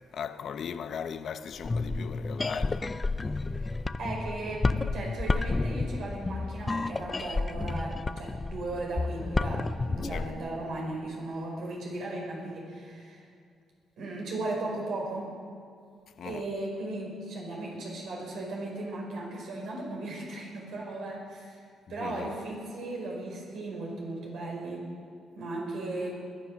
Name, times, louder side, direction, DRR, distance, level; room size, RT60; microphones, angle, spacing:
voice 1, 0.1-2.8 10.0-10.3 16.2-16.4 22.0-22.3, left 7 dB, 60° left, 0.9 m, -37 dB
sound 1, 1.5-10.3, left 3 dB, 25° left, 0.6 m, -31 dB
voice 2, 4.0-13.2 14.0-15.3 16.2-21.6 21.9-24.8 25.3-26.1, right 2 dB, 75° right, 5.0 m, -36 dB
21.0 x 10.0 x 6.4 m
cardioid pair, 90°, 0 cm